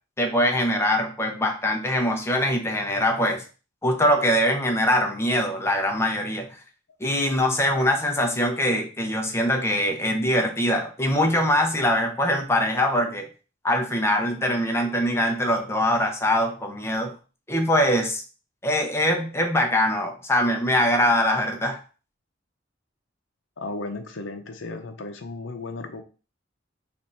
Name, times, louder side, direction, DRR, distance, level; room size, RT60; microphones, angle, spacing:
voice 1, 0.2-3.4 3.8-6.5 7.0-13.3 13.6-17.1 17.5-18.2 18.6-21.8, left 1 dB, 15° left, 3 dB, 0.6 m, -23 dB
voice 2, 23.6-26.0, left 2 dB, 75° left, 5 dB, 0.7 m, -35 dB
3.4 x 2.5 x 4.2 m, 0.35 s
head